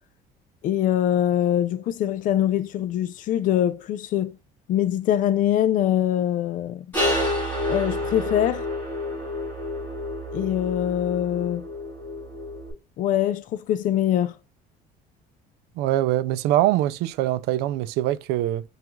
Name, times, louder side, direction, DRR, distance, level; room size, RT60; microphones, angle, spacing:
voice 1, 0.6-4.4 4.7-6.9 7.7-8.7 10.3-11.7 13.0-14.4, left 11 dB, 55° left, 0.4 m, -23 dB
sound 1, 6.9-12.7, left 1 dB, 10° left, 2.4 m, -29 dB
voice 2, 15.8-18.6, right 14 dB, 80° right, 0.4 m, -23 dB
6.0 x 2.4 x 2.3 m
cardioid pair, 135°, 17 cm